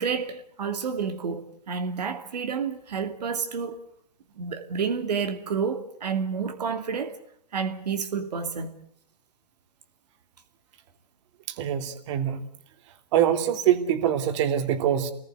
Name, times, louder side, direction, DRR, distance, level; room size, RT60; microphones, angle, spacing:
voice 1, 0.0-3.8 4.4-7.2 7.5-8.7, right 6 dB, 80° right, 2.8 m, -30 dB
voice 2, 11.5-12.4 13.1-15.1, right 10 dB, 45° right, 3.1 m, -24 dB
28.0 x 20.5 x 8.2 m
hypercardioid pair, 145°, 21 cm